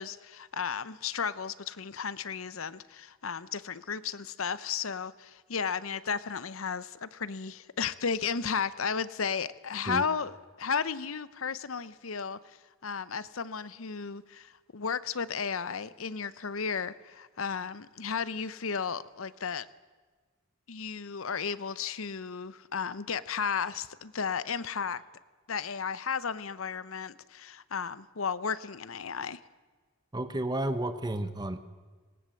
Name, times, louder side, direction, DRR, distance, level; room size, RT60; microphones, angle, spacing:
voice 1, 0.0-12.6 12.8-19.7 20.7-25.0 25.5-29.4, left 6 dB, 80° left, 0.8 m, -34 dB
voice 2, 30.1-31.6, right 1 dB, 20° right, 1.1 m, -31 dB
19.5 x 19.0 x 7.6 m
head